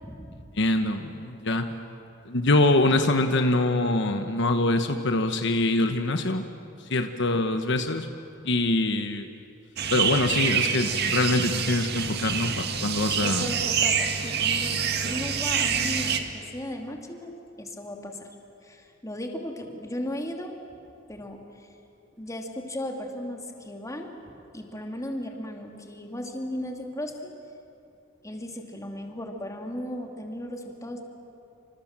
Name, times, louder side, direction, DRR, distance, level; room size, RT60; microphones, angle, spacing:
voice 1, 0.0-0.4 13.2-14.8 15.1-17.3 17.6-18.3 18.6-20.5 21.1-21.4 22.2-24.1 24.5-27.3 28.2-31.0, left 1 dB, 15° left, 2 dB, 2.7 m, -36 dB
voice 2, 0.6-1.7 2.3-6.5 6.9-8.1 8.4-9.3 9.9-13.5, left 2 dB, 65° left, 7 dB, 1.2 m, -24 dB
sound 1, 9.8-16.2, right 7 dB, 55° right, 1.9 m, -26 dB
28.0 x 26.5 x 7.5 m, 2.7 s
head